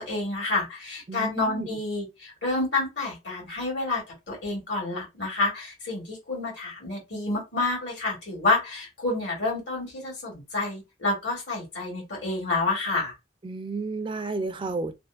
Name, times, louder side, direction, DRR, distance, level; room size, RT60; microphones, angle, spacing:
voice 1, 0.0-4.0 4.3-13.1, left 3 dB, 70° left, 1.9 m, -29 dB
voice 2, 1.1-1.7 13.4-14.9, right 3 dB, 25° right, 0.4 m, -32 dB
3.4 x 2.5 x 2.3 m
head